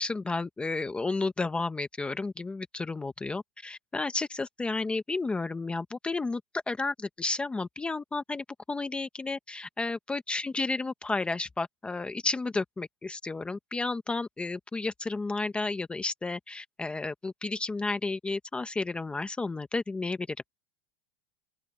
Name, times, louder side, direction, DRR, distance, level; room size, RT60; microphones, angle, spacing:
voice 1, 0.0-6.4 6.7-20.4, left 3 dB, 5° left, 0.6 m, -32 dB
open air
supercardioid pair, 175°, 16 cm